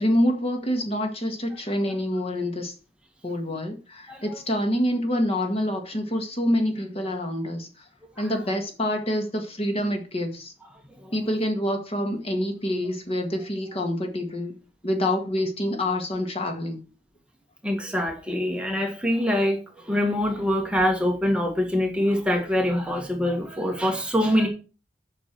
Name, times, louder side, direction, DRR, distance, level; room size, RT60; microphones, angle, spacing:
voice 1, 0.0-2.7 3.2-7.7 8.2-10.5 11.1-14.6 14.8-16.8, left 1 dB, 35° left, 5 dB, 1.8 m, -26 dB
voice 2, 17.6-24.5, left 1 dB, 5° right, 2 dB, 1.7 m, -24 dB
7.8 x 6.0 x 6.0 m, 0.34 s
head